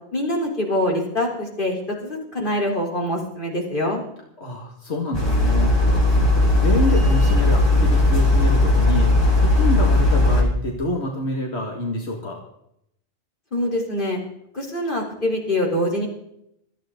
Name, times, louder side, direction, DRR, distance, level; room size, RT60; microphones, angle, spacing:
voice 1, 0.1-4.0 13.5-14.2 14.5-16.1, left 1 dB, 55° left, -1 dB, 4.0 m, -24 dB
voice 2, 4.4-12.4, left 1 dB, 90° left, 1 dB, 2.4 m, -28 dB
sound 1, 5.1-10.4, left 2 dB, 25° left, 3.7 m, -17 dB
26.5 x 9.6 x 3.9 m, 0.75 s
omnidirectional pair, 1.1 m